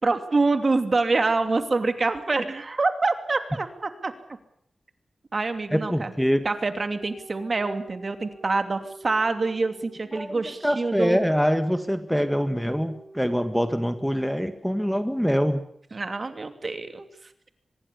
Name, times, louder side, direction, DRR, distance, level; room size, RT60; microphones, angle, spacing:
voice 1, 0.0-4.1 5.3-6.1 6.4-11.2 15.9-17.1, right 3 dB, 45° right, 8 dB, 2.8 m, -26 dB
voice 2, 5.7-6.4 10.1-15.6, equal, ahead, 9 dB, 1.7 m, -24 dB
sound 1, 7.0-11.0 12.3-14.5, right 2 dB, 20° right, 6.2 m, -48 dB
25.0 x 21.5 x 7.1 m, 0.68 s
wide cardioid pair, 95°, 0 cm